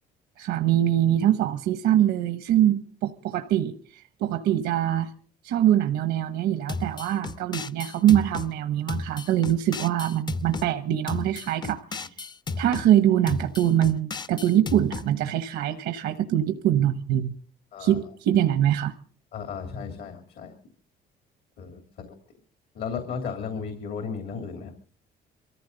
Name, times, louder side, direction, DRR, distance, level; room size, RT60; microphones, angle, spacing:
voice 1, 0.4-5.1 5.4-12.1 12.6-17.4 17.8-18.9, right 11 dB, 80° right, 9 dB, 1.0 m, -23 dB
sound 1, 6.7-8.5 8.9-10.7 11.1-12.9 13.3-15.1, left 4 dB, 25° left, 0.7 m, -34 dB
voice 2, 17.7-18.0 19.3-20.5 21.6-22.2 22.7-24.7, left 6 dB, 65° left, 5 dB, 2.8 m, -35 dB
24.0 x 14.5 x 3.9 m, 0.43 s
cardioid pair, 110°, 17 cm